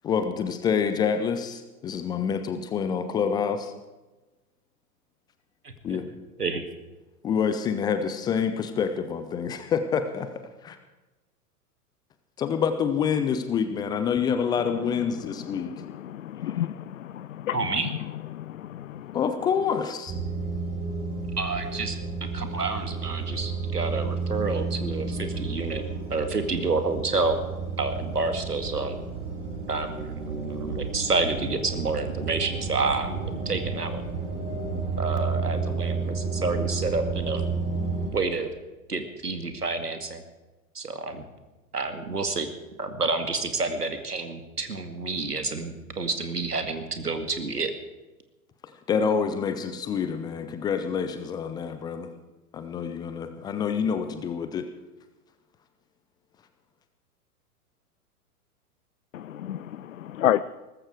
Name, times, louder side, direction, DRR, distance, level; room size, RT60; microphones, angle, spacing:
voice 1, 0.0-3.7 5.8-6.1 7.2-10.3 10.6-10.8 12.4-15.8 16.4-16.7 19.1-20.2 48.6-52.1 52.5-54.7, left 6 dB, 10° left, 9 dB, 0.5 m, -27 dB
voice 2, 5.6-6.0 6.4-6.6 17.5-17.9 21.4-22.0 22.3-25.8 26.1-27.4 27.8-29.0 29.7-34.1 35.0-37.5 38.1-38.5 38.9-40.2 40.7-41.2 41.7-42.5 42.8-47.7, right 3 dB, 80° right, 7 dB, 2.2 m, -29 dB
voice 3, 16.1-16.7 17.1-17.6 18.3-18.4 18.7-19.0 59.1-59.6 60.2-60.4, left 12 dB, 55° left, 16 dB, 0.6 m, -28 dB
sound 1, 20.1-38.1, right 4 dB, 30° right, 6.9 m, -31 dB
18.5 x 14.5 x 4.8 m, 1.1 s
figure-of-eight pair, 100°, 46 cm